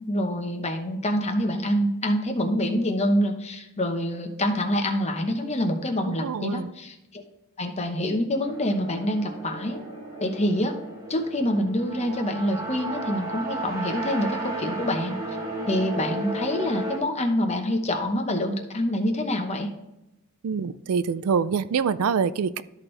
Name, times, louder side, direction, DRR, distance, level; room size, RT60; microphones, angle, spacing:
voice 1, 0.1-7.2 7.6-9.8 10.2-10.7 11.1-15.2 15.7-19.7, equal, 30° left, 4 dB, 0.9 m, -26 dB
voice 2, 6.0-6.7 20.4-22.6, right 6 dB, 80° right, 15 dB, 0.4 m, -25 dB
sound 1, 8.4-17.0, right 2 dB, 15° right, 1.5 m, -34 dB
13.0 x 4.4 x 3.2 m, 0.93 s
head